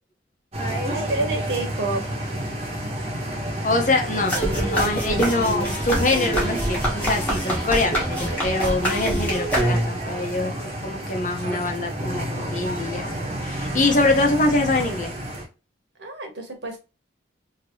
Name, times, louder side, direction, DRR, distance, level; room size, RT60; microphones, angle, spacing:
sound 1, 0.5-15.4, right 1 dB, 35° right, 0.9 m, -30 dB
voice 1, 0.9-2.0 5.1-5.4 16.0-16.8, right 2 dB, 70° right, 3 dB, 1.1 m, -29 dB
voice 2, 3.6-10.5 10.8-13.1 13.4-15.1, left 2 dB, 40° left, 3 dB, 0.7 m, -24 dB
sound 2, 4.3-10.1, right 1 dB, 10° left, 1.1 m, -25 dB
2.9 x 2.8 x 2.9 m, 0.29 s
head